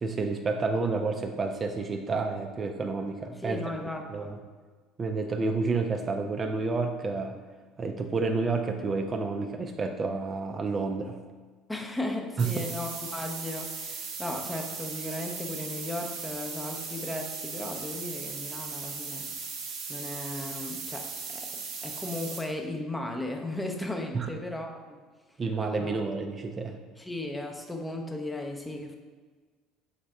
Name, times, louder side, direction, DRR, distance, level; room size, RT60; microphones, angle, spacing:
voice 1, 0.0-3.6 4.1-4.4 5.0-7.4 7.8-11.2 12.4-12.6 24.1-24.3 25.4-26.8, right 3 dB, 35° right, 5 dB, 0.4 m, -30 dB
voice 2, 3.4-4.3 11.7-19.3 19.9-24.8 25.8-26.0 27.0-29.0, left 1 dB, 10° left, 3 dB, 0.6 m, -36 dB
sound 1, 12.4-22.4, right 5 dB, 70° right, 0.8 m, -38 dB
4.0 x 3.3 x 3.6 m, 1.4 s
hypercardioid pair, 75°, 0 cm